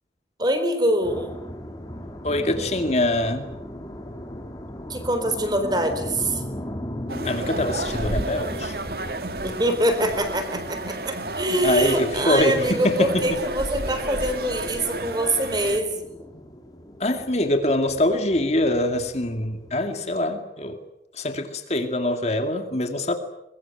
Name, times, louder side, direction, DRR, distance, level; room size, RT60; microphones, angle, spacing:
voice 1, 0.4-1.4 4.9-6.4 9.4-16.1, right 1 dB, 25° right, 8 dB, 4.0 m, -24 dB
sound 1, 1.0-19.9, equal, 20° left, 2.9 m, -38 dB
voice 2, 2.2-3.6 7.2-8.7 11.6-13.4 17.0-20.8 21.1-23.1, left 1 dB, 40° left, 6 dB, 2.3 m, -24 dB
sound 2, 7.1-15.8, right 2 dB, 60° right, 2.1 m, -32 dB
23.5 x 22.5 x 9.1 m, 0.85 s
head